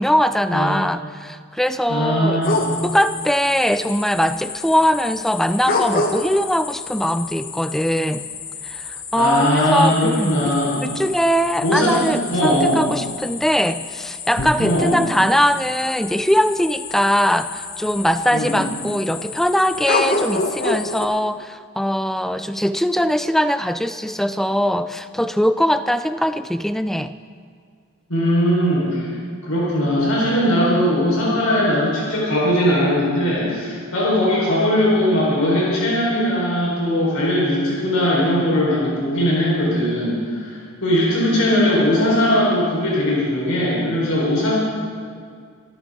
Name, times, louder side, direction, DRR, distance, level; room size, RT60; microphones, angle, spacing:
voice 1, 0.0-2.4 2.8-8.3 8.6-10.5 10.8-27.1, equal, ahead, 12 dB, 0.3 m, -21 dB
voice 2, 1.9-2.6 9.2-10.9 11.6-12.0 12.3-12.8 14.6-15.0 18.3-18.6 28.1-29.1 29.4-44.6, equal, 80° left, -6 dB, 4.3 m, -19 dB
sound 1, 2.4-21.1, left 3 dB, 40° left, 1.2 m, -29 dB
26.0 x 13.5 x 3.7 m, 2.1 s
head